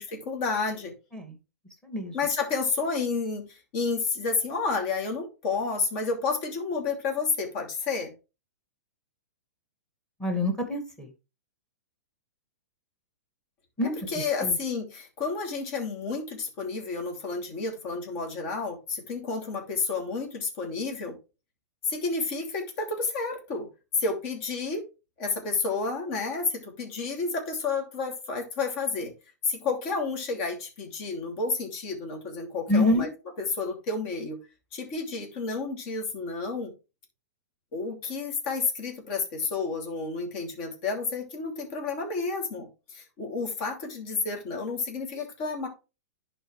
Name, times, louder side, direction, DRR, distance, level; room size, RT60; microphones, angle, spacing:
voice 1, 0.1-0.9 2.1-8.1 13.8-21.2 21.8-23.7 24.0-24.9 25.2-29.1 29.4-33.1 33.4-34.4 34.7-36.7 37.7-45.7, left 4 dB, 45° left, 2 dB, 2.7 m, -30 dB
voice 2, 1.8-2.2 10.2-11.1 13.8-14.0 14.4-14.5 32.7-33.1, left 1 dB, 5° left, 5 dB, 2.1 m, -26 dB
11.0 x 4.4 x 3.2 m, 0.28 s
hypercardioid pair, 125°, 9 cm